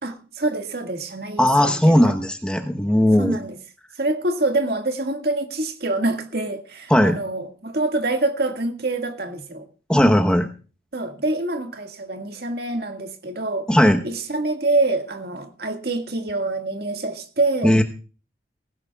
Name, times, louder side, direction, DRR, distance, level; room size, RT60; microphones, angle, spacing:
voice 1, 0.0-2.1 3.2-3.6 4.0-9.7 10.9-13.7 14.0-17.8, right 2 dB, 60° right, 1.9 m, -26 dB
voice 2, 1.4-3.4 6.9-7.2 9.9-10.5 13.7-14.0 17.6-17.8, equal, 5° left, 1.0 m, -17 dB
19.5 x 16.5 x 2.4 m
head